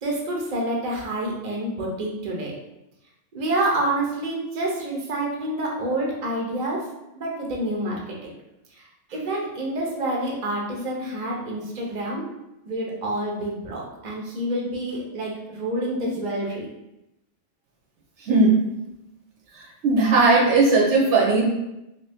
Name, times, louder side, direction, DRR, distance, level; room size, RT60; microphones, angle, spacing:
voice 1, 0.0-2.5 3.3-6.8 7.2-8.0 8.7-8.8 9.1-12.3 12.6-16.7, right 1 dB, 45° right, -2 dB, 0.8 m, -28 dB
voice 2, 18.3-18.7 19.8-21.4, right 3 dB, 80° right, -1 dB, 1.1 m, -17 dB
3.2 x 2.7 x 3.4 m, 0.91 s
omnidirectional pair, 1.2 m